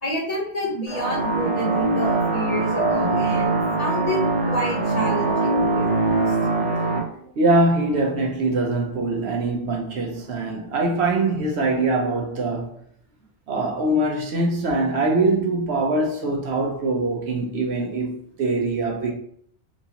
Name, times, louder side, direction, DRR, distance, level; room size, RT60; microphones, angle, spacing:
voice 1, 0.0-3.5 3.8-4.2 4.4-6.3, equal, 35° left, 0.8 m, -29 dB
sound 1, 0.9-7.0, right 2 dB, 85° right, 1.4 m, -22 dB
voice 2, 7.4-12.8 13.5-19.1, right 2 dB, 70° right, 1.0 m, -23 dB
3.6 x 2.9 x 2.8 m
omnidirectional pair, 1.2 m